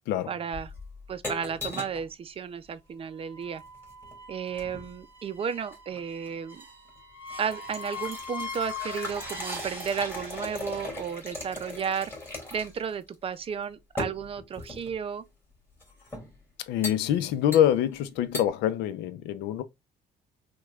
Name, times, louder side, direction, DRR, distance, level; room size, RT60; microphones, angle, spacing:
voice 1, 0.3-0.7 1.1-3.6 4.3-6.6 7.4-12.1 12.5-15.2, right 7 dB, 35° right, 0.5 m, -33 dB
sound 1, 0.5-2.1 3.5-4.9 5.7-6.4 6.9-7.0 7.3-12.9 13.1-13.2 14.0-15.0 15.8-16.3 16.8-17.0 17.5-18.0 18.3-18.5, left 2 dB, 15° left, 2.4 m, -39 dB
sound 2, 3.2-10.9, left 3 dB, 10° right, 1.3 m, -41 dB
voice 2, 16.7-19.6, left 11 dB, 85° left, 0.5 m, -25 dB
6.0 x 2.3 x 2.3 m
cardioid pair, 110°, 17 cm